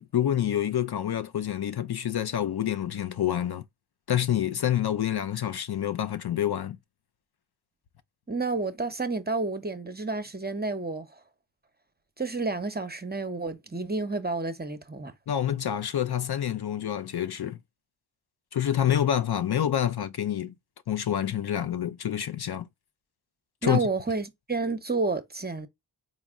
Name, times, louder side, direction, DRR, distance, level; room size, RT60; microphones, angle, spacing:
voice 1, 0.0-3.6 4.1-6.8 15.3-17.6 18.5-20.6 20.9-22.7 23.6-23.9, left 10 dB, 60° left, 0.5 m, -27 dB
voice 2, 8.3-11.2 12.2-15.1 23.6-25.7, right 3 dB, 20° right, 0.7 m, -30 dB
4.1 x 2.1 x 3.5 m
cardioid pair, 50°, 45 cm